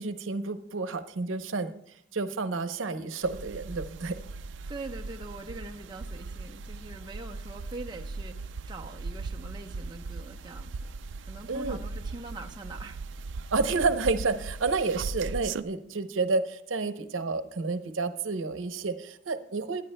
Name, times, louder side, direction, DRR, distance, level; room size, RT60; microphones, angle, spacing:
voice 1, 0.0-1.7 2.1-4.2 11.5-11.8 13.5-19.8, right 3 dB, 90° right, 10 dB, 0.8 m, -30 dB
sound 1, 3.2-15.6, right 3 dB, 65° right, 0.4 m, -39 dB
voice 2, 4.7-10.9 11.2-13.0, right 2 dB, 25° right, 1 dB, 0.8 m, -43 dB
24.0 x 10.5 x 2.2 m, 0.75 s
head